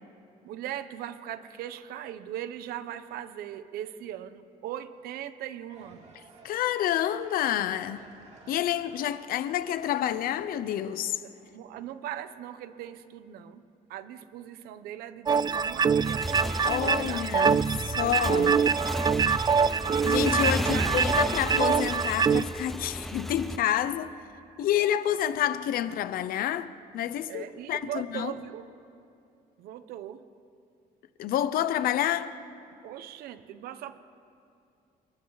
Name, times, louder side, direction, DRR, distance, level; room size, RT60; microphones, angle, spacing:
voice 1, 0.4-6.1 11.2-16.4 16.8-17.7 20.6-21.0 27.3-28.7 29.6-30.2 32.8-34.0, right 11 dB, 85° right, 1.0 m, -39 dB
sound 1, 5.7-11.6, right 3 dB, 45° right, 3.4 m, -54 dB
voice 2, 6.4-8.0 8.5-11.2 16.7-18.6 20.1-24.2 24.6-28.3 31.2-32.4, left 11 dB, 70° left, 0.9 m, -28 dB
sound 2, 15.3-22.4, right 6 dB, 25° right, 0.4 m, -25 dB
Motorcycle / Engine, 15.9-23.6, equal, ahead, 0.7 m, -34 dB
28.5 x 24.5 x 4.1 m
cardioid pair, 110°, 15 cm